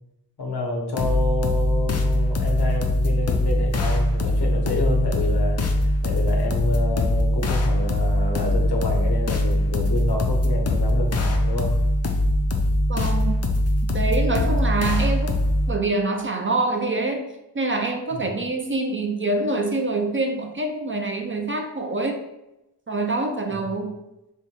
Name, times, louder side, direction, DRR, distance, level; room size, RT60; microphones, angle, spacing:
voice 1, 0.4-11.7 18.1-18.2 23.5-23.6, left 2 dB, 70° left, 1 dB, 0.9 m, -28 dB
sound 1, 1.0-15.7, left 1 dB, 40° left, 0.5 m, -22 dB
voice 2, 12.9-13.4 13.8-15.4 15.7-17.3 17.5-22.2 22.9-23.9, right 2 dB, 30° right, 3 dB, 0.4 m, -25 dB
3.4 x 2.6 x 4.2 m, 0.92 s
wide cardioid pair, 120°, 41 cm